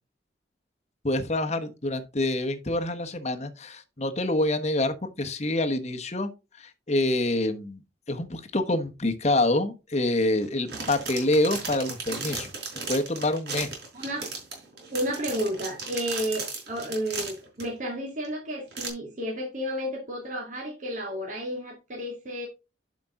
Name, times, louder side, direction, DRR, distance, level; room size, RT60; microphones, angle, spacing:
voice 1, 1.0-6.3 6.6-7.8 8.1-12.5 12.9-13.7, left 1 dB, 40° left, 1.1 m, -26 dB
sound 1, 10.4-17.6 18.2-18.3 18.7-18.9, right 4 dB, 60° right, 4.8 m, -36 dB
voice 2, 13.9-14.3 14.9-22.5, equal, 45° right, 2.3 m, -32 dB
11.5 x 5.2 x 3.7 m
head